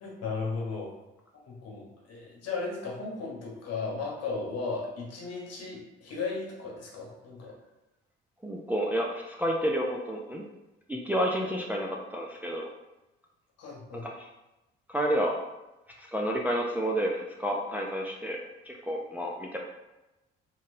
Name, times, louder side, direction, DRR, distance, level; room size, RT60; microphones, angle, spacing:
voice 1, 0.0-0.9 1.5-7.5 13.6-14.1, left 4 dB, 55° left, -2 dB, 1.1 m, -35 dB
voice 2, 8.4-10.4 10.9-12.6 14.1-14.3 14.9-15.3 16.0-18.4 18.7-19.6, equal, 5° right, -1 dB, 0.4 m, -30 dB
3.8 x 2.1 x 2.6 m, 1.0 s
hypercardioid pair, 55°, 29 cm